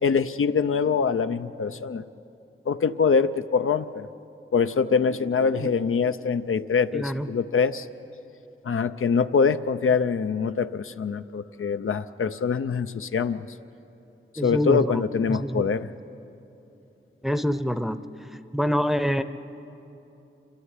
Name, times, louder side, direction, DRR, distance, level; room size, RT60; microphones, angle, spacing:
voice 1, 0.0-2.0 2.7-4.1 4.5-7.9 8.6-13.5 14.4-15.9, left 5 dB, 80° left, 10 dB, 0.6 m, -24 dB
voice 2, 6.9-7.3 14.4-15.6 17.2-18.0 18.5-19.2, equal, ahead, 11 dB, 0.7 m, -26 dB
27.0 x 13.0 x 9.6 m, 3.0 s
wide cardioid pair, 85°, 21 cm